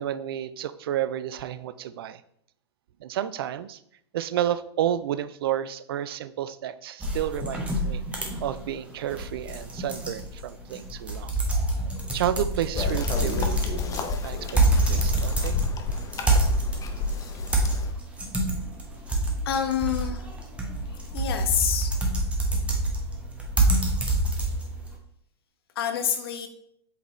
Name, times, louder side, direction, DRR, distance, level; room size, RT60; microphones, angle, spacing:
voice 1, 0.0-2.2 3.0-3.8 4.1-11.3 12.1-15.6, right 11 dB, 60° right, 15 dB, 0.4 m, -31 dB
sound 1, 7.0-24.9, right 2 dB, 10° right, 1.2 m, -27 dB
sound 2, 12.7-17.9, left 4 dB, 25° left, 0.8 m, -30 dB
voice 2, 19.4-20.3 21.1-21.9 25.8-26.5, left 8 dB, 60° left, 6 dB, 1.0 m, -27 dB
8.0 x 4.2 x 3.1 m, 0.70 s
figure-of-eight pair, 95°, 14 cm